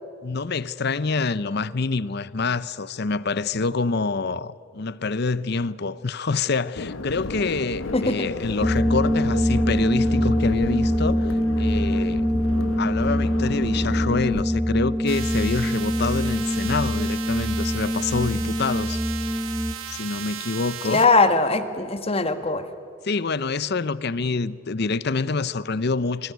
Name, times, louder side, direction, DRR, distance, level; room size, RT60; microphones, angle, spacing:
voice 1, 0.2-12.3 12.8-19.0 19.9-21.1 23.0-26.3, left 4 dB, 55° left, 0.7 m, -26 dB
sound 1, 6.7-14.4, left 3 dB, 85° left, 1.0 m, -33 dB
voice 2, 7.9-8.3 20.9-22.7, left 3 dB, 30° left, 1.3 m, -20 dB
sound 2, 8.6-19.7, equal, ahead, 1.2 m, -24 dB
sound 3, 15.1-21.1, right 10 dB, 85° right, 1.4 m, -36 dB
27.0 x 21.5 x 9.4 m
head